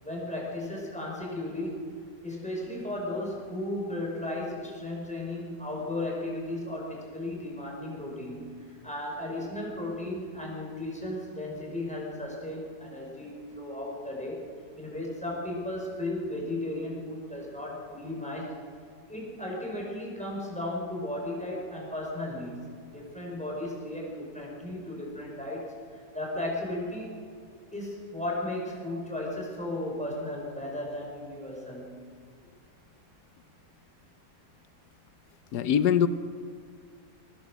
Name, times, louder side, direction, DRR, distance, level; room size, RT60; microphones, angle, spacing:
voice 1, 0.0-1.9 2.2-14.4 14.8-18.6 19.1-27.2 27.7-32.0, left 1 dB, 5° left, -2 dB, 5.2 m, -35 dB
voice 2, 35.5-36.1, left 8 dB, 85° left, 12 dB, 1.4 m, -22 dB
22.5 x 18.5 x 6.3 m, 2.3 s
omnidirectional pair, 1.7 m